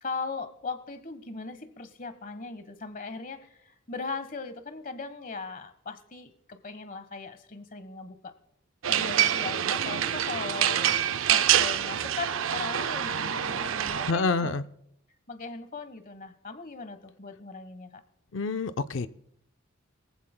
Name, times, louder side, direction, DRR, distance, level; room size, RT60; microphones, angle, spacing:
voice 1, 0.0-8.3 8.9-14.5 15.3-18.0, left 4 dB, 40° left, 11 dB, 1.2 m, -39 dB
sound 1, 8.8-14.1, right 10 dB, 70° right, 0.5 m, -26 dB
voice 2, 14.1-14.6 18.3-19.1, left 4 dB, 65° left, 11 dB, 0.5 m, -27 dB
22.0 x 15.0 x 2.2 m, 0.76 s
head